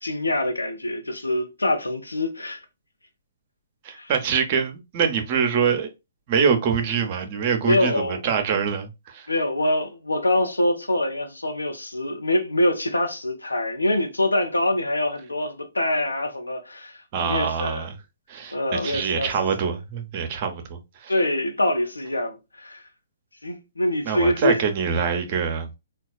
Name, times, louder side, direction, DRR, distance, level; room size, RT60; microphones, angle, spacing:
voice 1, 0.0-2.6 3.9-4.1 7.6-8.2 9.3-17.9 18.5-19.3 21.1-22.8 23.4-24.6, left 1 dB, 85° left, 0.7 m, -24 dB
voice 2, 3.8-5.9 6.3-9.3 17.1-18.0 18.3-21.1 24.0-25.7, right 6 dB, 40° right, 0.8 m, -24 dB
3.9 x 2.3 x 2.3 m
figure-of-eight pair, 125°, 0 cm